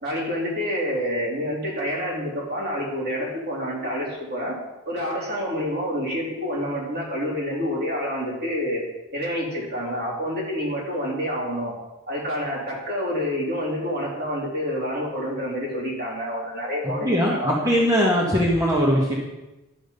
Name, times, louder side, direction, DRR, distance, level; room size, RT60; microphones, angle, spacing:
voice 1, 0.0-4.6 4.9-8.8 9.1-11.7 12.1-17.6 18.0-18.1, equal, 55° right, -4 dB, 3.6 m, -28 dB
voice 2, 17.0-19.1, equal, 20° right, -4 dB, 1.5 m, -20 dB
11.5 x 7.6 x 5.3 m, 1.0 s
head